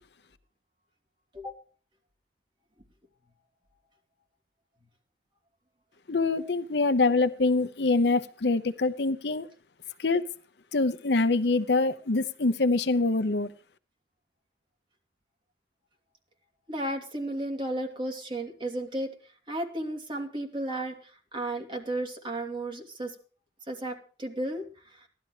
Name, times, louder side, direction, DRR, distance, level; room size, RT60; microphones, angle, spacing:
voice 1, 6.1-9.5 10.0-10.2 10.7-13.5, left 3 dB, 60° left, 12 dB, 0.8 m, -25 dB
voice 2, 16.7-19.1 19.5-23.1 23.7-25.1, right 1 dB, 25° right, 2 dB, 2.8 m, -34 dB
16.5 x 12.0 x 4.9 m, 0.40 s
head